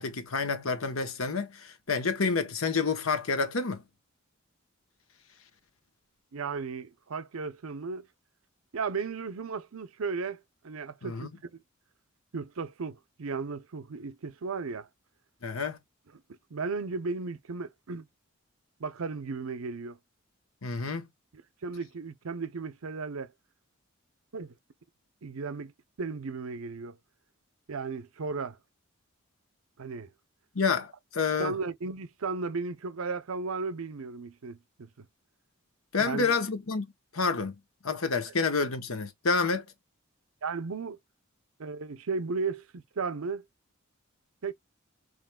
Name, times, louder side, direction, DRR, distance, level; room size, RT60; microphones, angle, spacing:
voice 1, 0.0-3.8 11.0-11.3 15.4-15.8 20.6-21.0 30.5-31.5 35.9-36.9 37.1-37.5 37.8-39.6, left 4 dB, 75° left, 1.0 m, -29 dB
voice 2, 6.3-8.1 8.7-11.5 12.3-14.9 16.3-18.1 18.8-20.0 21.6-23.3 24.3-24.5 25.2-25.7 26.0-27.0 27.7-28.6 29.8-30.1 31.4-35.1 36.0-36.4 40.4-41.0 41.6-43.4 44.4-44.5, right 4 dB, 80° right, 0.6 m, -35 dB
5.0 x 3.2 x 2.2 m
head